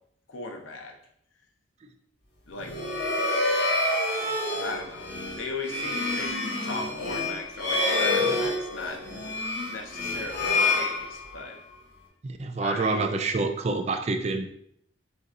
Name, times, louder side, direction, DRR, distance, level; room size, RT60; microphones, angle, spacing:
voice 1, 0.3-1.0 2.5-2.8 4.2-9.0 9.7-11.6 12.6-13.0, left 3 dB, 85° left, 3 dB, 0.8 m, -37 dB
sound 1, 2.6-11.6, left 2 dB, 60° left, 1.1 m, -27 dB
voice 2, 12.2-14.5, right 3 dB, 35° right, 7 dB, 0.4 m, -27 dB
6.7 x 2.7 x 2.5 m, 0.70 s
head